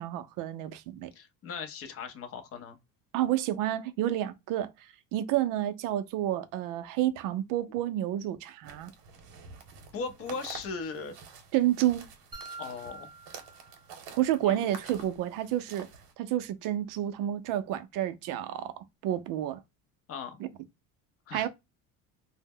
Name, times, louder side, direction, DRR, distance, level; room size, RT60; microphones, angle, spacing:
voice 1, 0.0-1.1 3.1-4.7 5.1-8.9 11.5-12.1 14.2-15.9 16.2-19.6 20.4-20.5 21.3-21.5, right 13 dB, 55° right, 0.5 m, -30 dB
voice 2, 1.1-2.8 9.9-11.2 12.6-13.1 14.4-14.7 20.1-20.4 21.3-21.5, left 5 dB, 35° left, 0.6 m, -38 dB
sound 1, 8.6-16.1, right 6 dB, 75° right, 0.9 m, -49 dB
sound 2, 12.3-14.3, right 3 dB, 10° right, 0.6 m, -46 dB
2.0 x 2.0 x 3.4 m
supercardioid pair, 120°, 39 cm